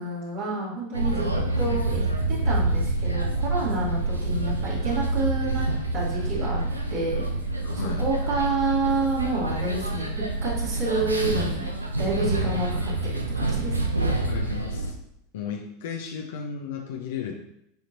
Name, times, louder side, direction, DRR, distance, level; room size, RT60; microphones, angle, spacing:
voice 1, 0.0-1.3 1.6-5.6 5.9-6.6 6.9-7.2 7.7-11.7 12.0-13.8, right 2 dB, 55° right, -8 dB, 2.6 m, -29 dB
sound 1, 0.9-14.9, right 2 dB, 90° right, 0.7 m, -27 dB
voice 2, 7.7-8.1 12.4-12.5 12.8-12.9 14.1-14.9 15.3-17.4, left 6 dB, 65° left, 1 dB, 0.7 m, -34 dB
10.5 x 4.4 x 2.7 m, 0.77 s
figure-of-eight pair, 85°, 0 cm